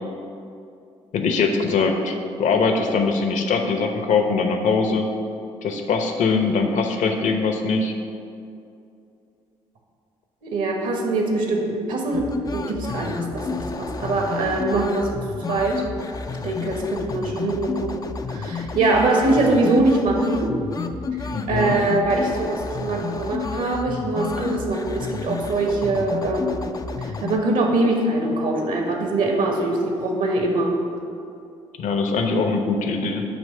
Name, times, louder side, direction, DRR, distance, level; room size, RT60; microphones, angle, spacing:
voice 1, 1.1-2.1 2.4-5.1 5.6-7.9 21.3-21.7 31.8-33.2, left 4 dB, 55° left, 5 dB, 0.8 m, -22 dB
voice 2, 10.4-15.1 15.5-15.8 16.4-18.0 18.3-20.5 21.2-26.6 27.0-30.7, right 2 dB, 60° right, 1 dB, 1.2 m, -23 dB
sound 1, 12.1-27.4, left 5 dB, 25° left, 0.4 m, -31 dB
8.6 x 3.2 x 6.5 m, 2.5 s
figure-of-eight pair, 45°, 16 cm